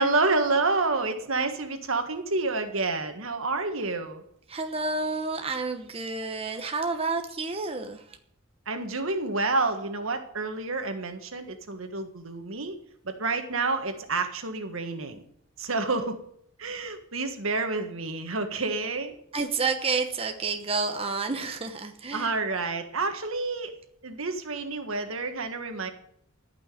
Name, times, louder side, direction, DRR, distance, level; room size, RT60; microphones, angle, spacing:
voice 1, 0.0-4.2 8.7-12.8 13.0-15.2 15.6-16.2 16.6-19.1 22.1-23.7 24.0-25.9, right 3 dB, 75° right, 7 dB, 1.7 m, -29 dB
voice 2, 4.5-8.2 19.3-22.3, right 4 dB, 30° right, 5 dB, 1.0 m, -30 dB
14.0 x 6.2 x 9.4 m, 0.68 s
head